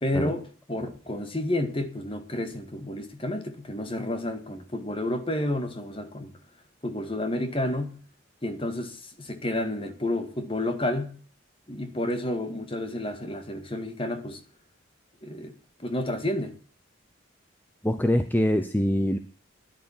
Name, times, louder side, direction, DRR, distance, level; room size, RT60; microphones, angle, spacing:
voice 1, 0.0-6.3 6.8-8.0 8.4-11.2 11.7-14.4 15.2-16.6, left 1 dB, 25° left, 1.9 m, -30 dB
voice 2, 17.8-19.2, left 1 dB, 10° left, 0.8 m, -24 dB
13.0 x 11.5 x 7.4 m
head